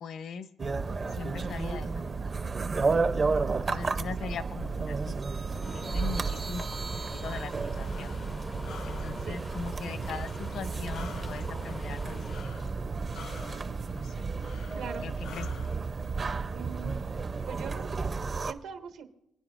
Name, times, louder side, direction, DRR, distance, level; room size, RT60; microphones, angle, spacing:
voice 1, 0.0-0.5 1.1-2.1 3.6-5.1 5.5-8.2 8.8-12.6 13.9-14.1 15.0-15.6, left 6 dB, 65° left, 12 dB, 0.7 m, -41 dB
sound 1, 0.6-18.5, right 4 dB, 30° right, 0.5 m, -32 dB
sound 2, 5.6-12.4, left 3 dB, 25° left, 0.4 m, -45 dB
Breathing, 7.4-15.8, left 6 dB, 85° left, 1.0 m, -48 dB
voice 2, 14.7-15.0 16.5-17.1 17.5-18.0 18.4-19.1, right 7 dB, 85° right, 5 dB, 1.3 m, -42 dB
28.5 x 9.6 x 2.5 m, 0.83 s
cardioid pair, 145°, 0 cm